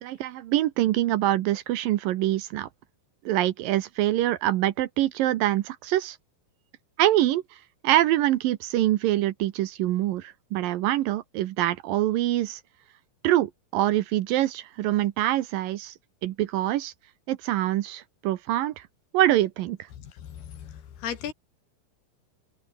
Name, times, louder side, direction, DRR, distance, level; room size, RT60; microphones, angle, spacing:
voice 1, 0.0-2.7 3.3-6.2 7.0-7.4 7.8-12.6 13.2-15.9 16.2-16.9 17.3-18.7 19.1-19.8, right 14 dB, 75° right, 2.4 m, -24 dB
voice 2, 20.0-21.3, left 9 dB, 80° left, 4.6 m, -37 dB
omnidirectional pair, 4.5 m